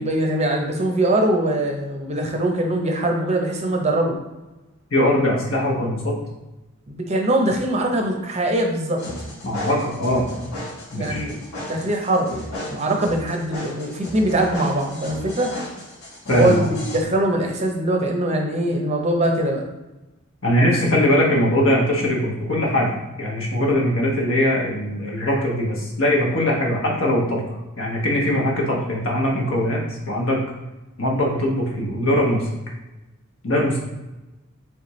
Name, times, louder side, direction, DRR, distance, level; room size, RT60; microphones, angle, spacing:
voice 1, 0.0-4.2 6.9-9.0 10.9-11.4 11.7-15.5 16.3-19.6, right 1 dB, 30° right, 2 dB, 0.6 m, -22 dB
voice 2, 4.9-6.2 9.4-10.3 10.9-11.3 16.3-16.7 20.4-22.9 23.2-27.4 27.8-30.4 31.0-32.5 33.4-33.8, left 1 dB, 65° left, -2 dB, 1.1 m, -21 dB
sound 1, 9.0-17.0, left 1 dB, 90° left, 1.4 m, -35 dB
4.2 x 3.4 x 3.1 m, 1.0 s
head